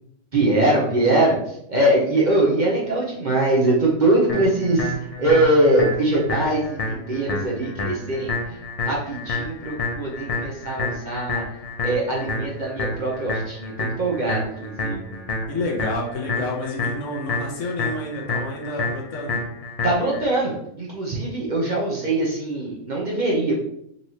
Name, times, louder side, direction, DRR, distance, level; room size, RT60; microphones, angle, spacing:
voice 1, 0.3-1.4 1.7-4.9 5.2-8.4 8.8-11.4 11.8-15.2 19.8-23.6, right 1 dB, 40° right, -4 dB, 0.8 m, -22 dB
sound 1, 4.3-20.3, left 2 dB, 45° left, 0.5 m, -29 dB
voice 2, 15.5-19.4, left 2 dB, 65° left, 0 dB, 1.2 m, -29 dB
4.0 x 3.2 x 2.8 m, 0.73 s
omnidirectional pair, 1.4 m